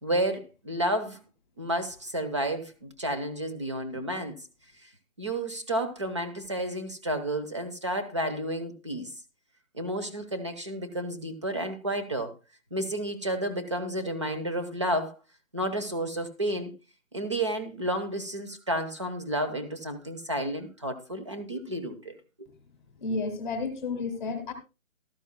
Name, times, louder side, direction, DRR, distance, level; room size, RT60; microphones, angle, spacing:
voice 1, 0.0-1.2 1.6-4.4 5.2-9.1 9.7-12.3 12.7-15.1 15.5-16.7 17.1-22.5, right 1 dB, 20° right, 7 dB, 0.9 m, -31 dB
voice 2, 22.9-24.5, left 3 dB, 5° left, 4 dB, 1.4 m, -32 dB
14.0 x 13.0 x 2.2 m, 0.29 s
hypercardioid pair, 175°, 42 cm